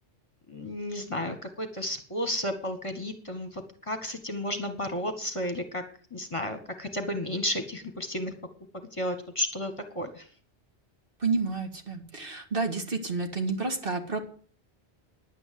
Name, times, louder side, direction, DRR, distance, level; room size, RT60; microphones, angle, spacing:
voice 1, 0.5-5.8 6.1-8.3 8.7-10.3, left 1 dB, 30° left, 7 dB, 1.6 m, -33 dB
voice 2, 11.2-14.2, right 3 dB, 50° right, 5 dB, 2.0 m, -30 dB
10.5 x 9.1 x 7.7 m, 0.44 s
omnidirectional pair, 1.2 m